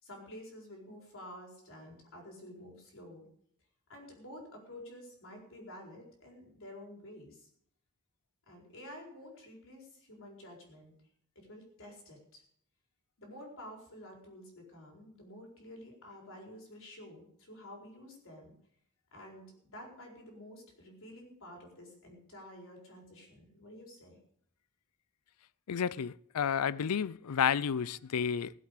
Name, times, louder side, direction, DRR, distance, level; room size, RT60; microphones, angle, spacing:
voice 1, 0.0-3.2 3.9-7.5 8.5-10.9 11.3-12.4 13.2-18.6 19.1-24.2, left 1 dB, 60° left, 4.5 m, -50 dB
voice 2, 25.7-28.5, left 7 dB, 80° left, 0.5 m, -31 dB
17.0 x 8.0 x 6.6 m
head